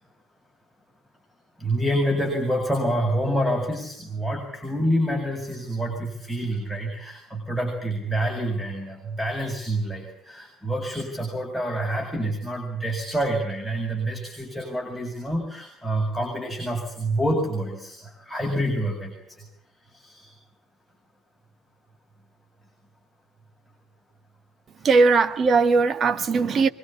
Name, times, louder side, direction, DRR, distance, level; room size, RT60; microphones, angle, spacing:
voice 1, 1.6-19.5 19.8-20.3 24.8-24.9, right 1 dB, 5° right, 7.6 m, -27 dB
voice 2, 24.8-26.7, right 4 dB, 40° right, 1.7 m, -19 dB
25.0 x 22.5 x 8.8 m
figure-of-eight pair, 55°, 0 cm